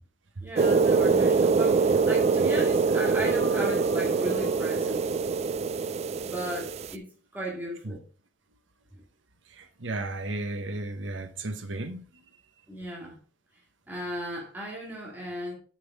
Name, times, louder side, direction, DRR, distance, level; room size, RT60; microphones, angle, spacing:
voice 1, 0.4-5.0 6.2-7.0 7.3-8.0 12.7-13.2 13.9-15.5, right 1 dB, 10° right, 2.1 m, -35 dB
sound 1, 0.6-6.9, right 4 dB, 35° right, 0.3 m, -24 dB
sound 2, 1.6-5.7, left 1 dB, 30° left, 2.0 m, -47 dB
voice 2, 9.5-12.0, right 2 dB, 80° right, 1.1 m, -34 dB
7.8 x 5.3 x 4.6 m
head